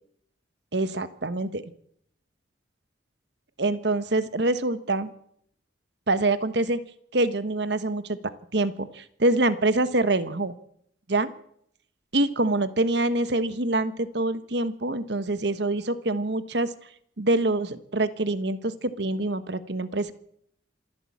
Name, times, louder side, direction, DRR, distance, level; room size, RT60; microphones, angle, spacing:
voice 1, 0.7-1.6 3.6-5.1 6.1-6.8 7.1-10.5 11.1-11.3 12.1-16.7 17.2-20.1, right 2 dB, 60° right, 13 dB, 1.3 m, -25 dB
26.5 x 11.5 x 8.6 m, 0.70 s
head